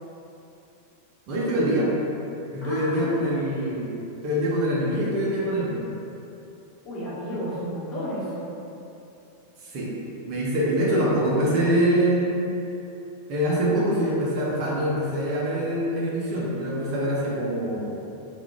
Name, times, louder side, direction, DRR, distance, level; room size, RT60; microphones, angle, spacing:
voice 1, 1.3-1.9 2.5-4.0 4.2-5.9 9.6-9.9 10.3-12.4 13.3-18.0, right 1 dB, 40° right, -6 dB, 0.5 m, -24 dB
voice 2, 2.6-3.2 6.8-8.5, equal, 30° left, -10 dB, 1.0 m, -32 dB
3.0 x 2.3 x 2.3 m, 2.8 s
figure-of-eight pair, 90°, 0 cm